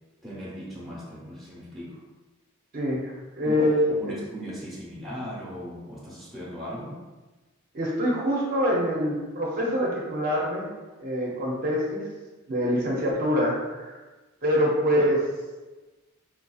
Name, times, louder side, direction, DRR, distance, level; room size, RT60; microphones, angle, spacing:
voice 1, 0.2-2.0 3.4-7.0, equal, ahead, -7 dB, 0.9 m, -38 dB
voice 2, 2.7-4.2 7.7-10.7 11.0-12.1 12.5-14.0 14.4-15.2, equal, 45° right, -3 dB, 0.6 m, -25 dB
4.6 x 2.6 x 2.3 m, 1.2 s
head